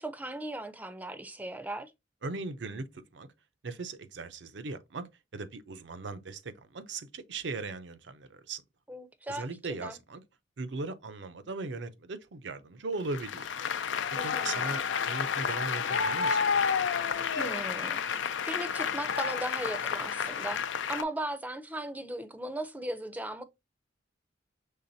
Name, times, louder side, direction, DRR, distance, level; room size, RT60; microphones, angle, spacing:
voice 1, 0.0-1.9 8.9-10.0 14.2-14.8 17.4-18.0 18.5-20.6 20.9-23.4, right 1 dB, 10° right, 0.5 m, -37 dB
voice 2, 2.2-2.9 3.1-3.3 3.6-5.1 5.3-8.6 9.3-10.2 10.6-13.5 14.2-16.5, right 3 dB, 75° right, 0.6 m, -38 dB
Applause, 13.1-21.0, left 6 dB, 85° left, 0.5 m, -30 dB
5.6 x 3.4 x 2.7 m
head